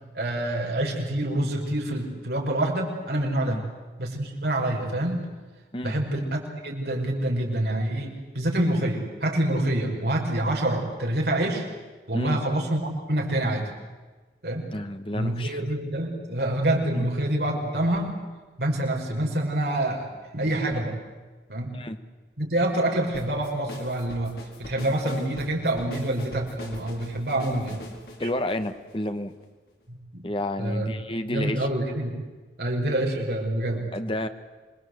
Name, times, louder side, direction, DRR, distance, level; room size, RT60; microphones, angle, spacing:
voice 1, 0.1-3.6 4.0-5.3 5.8-11.7 12.1-13.7 14.4-14.7 15.1-18.2 18.6-21.0 21.5-21.8 22.4-24.3 24.6-27.8 28.2-28.3 29.9-30.2 30.6-30.9 31.3-32.2 32.6-33.9, right 1 dB, 65° right, 0 dB, 5.6 m, -26 dB
voice 2, 14.7-15.6 16.9-17.1 21.7-22.0 28.2-29.3 30.2-31.7 33.9-34.3, left 1 dB, 30° left, 8 dB, 1.4 m, -30 dB
sound 1, 23.1-29.4, left 1 dB, 60° left, 4.6 m, -42 dB
27.0 x 22.0 x 8.1 m, 1.3 s
head